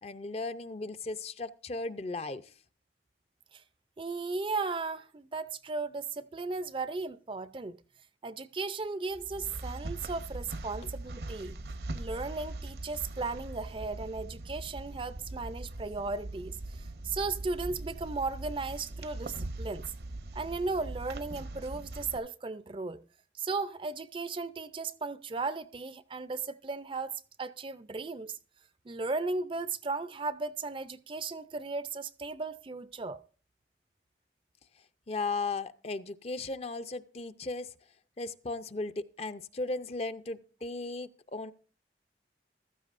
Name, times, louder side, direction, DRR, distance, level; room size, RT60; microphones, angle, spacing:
voice 1, 0.0-2.4 35.1-37.7 38.2-41.5, left 3 dB, 35° left, 0.5 m, -36 dB
voice 2, 4.0-7.8 8.2-11.6 11.9-19.9 20.3-23.0 23.4-27.1 27.4-28.4 28.8-33.2, right 3 dB, 30° right, 0.4 m, -36 dB
sound 1, 9.1-22.2, right 2 dB, 60° right, 0.8 m, -41 dB
15.0 x 13.5 x 2.5 m
head